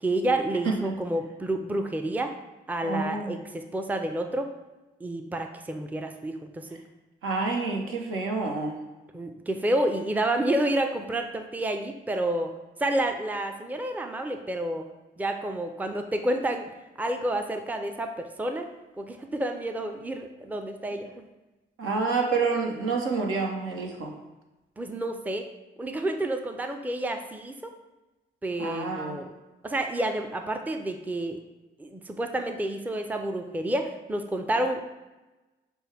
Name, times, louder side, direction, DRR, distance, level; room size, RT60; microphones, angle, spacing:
voice 1, 0.0-2.3 2.7-4.5 5.0-6.8 9.1-12.5 12.8-14.9 15.2-18.7 19.0-21.2 24.8-25.5 25.8-27.7 28.4-29.3 29.6-31.4 31.8-34.9, right 1 dB, 10° right, 5 dB, 0.4 m, -29 dB
voice 2, 2.8-3.4 7.2-8.8 21.8-24.1 28.6-29.2, right 4 dB, 75° right, 1 dB, 0.7 m, -28 dB
6.1 x 2.2 x 3.4 m, 1.1 s
hypercardioid pair, 40°, 21 cm